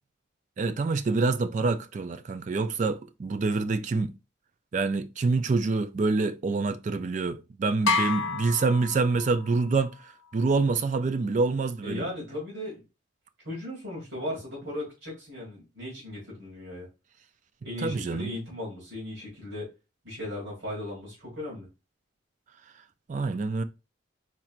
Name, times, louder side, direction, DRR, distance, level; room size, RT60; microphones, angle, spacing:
voice 1, 0.6-4.1 4.7-12.1 17.8-18.3 23.1-23.6, right 3 dB, 40° right, 0.3 m, -26 dB
sound 1, 7.9-9.6, left 4 dB, 85° left, 0.7 m, -29 dB
voice 2, 11.8-12.8 13.4-16.9 17.6-19.7 20.0-21.7, left 1 dB, 60° right, 2.6 m, -37 dB
4.3 x 4.3 x 2.4 m
head